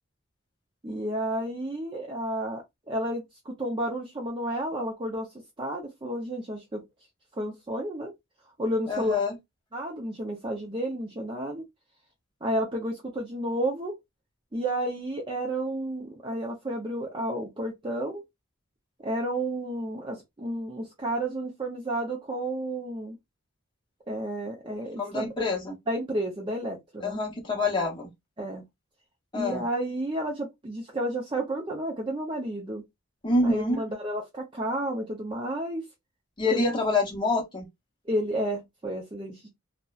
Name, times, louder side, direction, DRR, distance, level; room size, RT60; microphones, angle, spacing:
voice 1, 0.8-5.3 5.6-6.8 7.3-8.1 8.6-9.2 9.7-11.6 12.4-13.9 14.5-18.2 19.0-23.2 24.1-25.5 25.9-27.2 28.4-28.6 29.3-32.8 33.4-35.8 36.5-36.6 38.1-39.5, right 1 dB, 20° right, 0.4 m, -31 dB
voice 2, 8.9-9.4 25.0-25.7 27.0-28.1 29.3-29.6 33.2-33.8 36.4-37.7, left 2 dB, 20° left, 0.7 m, -26 dB
2.7 x 2.1 x 2.3 m
head